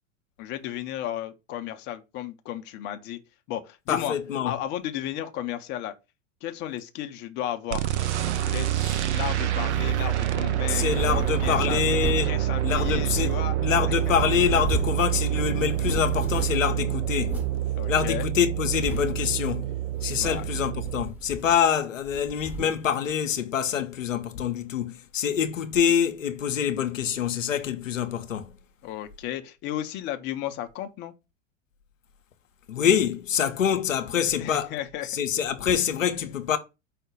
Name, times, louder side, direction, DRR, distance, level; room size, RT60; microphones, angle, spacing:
voice 1, 0.4-3.2 3.5-4.1 4.4-5.9 6.4-7.9 8.4-8.7 9.1-11.8 12.2-13.6 14.1-14.2 17.8-18.2 20.2-20.4 28.8-31.1 34.4-35.1, left 12 dB, 30° left, 0.5 m, -34 dB
voice 2, 3.9-4.5 10.7-17.4 17.9-19.7 20.0-28.6 32.7-34.7 35.0-36.6, left 8 dB, 80° left, 0.6 m, -26 dB
sound 1, 7.7-21.0, right 12 dB, 60° right, 0.6 m, -27 dB
sound 2, 9.6-10.2 10.7-12.4 12.7-13.7 14.0-15.0 15.3-15.4 15.7-16.7 17.2-17.6 18.1-18.2 18.6-19.3 20.0-20.5 20.8-21.7 22.0-22.9, equal, 5° right, 0.9 m, -36 dB
4.8 x 2.1 x 4.8 m
figure-of-eight pair, 90°, 39 cm